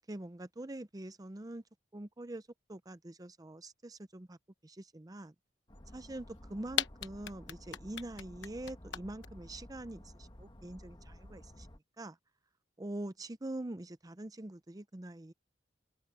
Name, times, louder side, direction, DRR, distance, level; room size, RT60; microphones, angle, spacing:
voice 1, 0.0-1.6 1.9-2.4 2.7-4.4 4.6-5.3 5.9-11.7 12.0-12.2 12.8-15.3, right 1 dB, 20° right, 0.6 m, -44 dB
sound 1, 5.7-11.8, left 1 dB, 25° left, 1.4 m, -53 dB
sound 2, 6.4-6.5 6.7-9.2, left 10 dB, 70° left, 1.1 m, -35 dB
head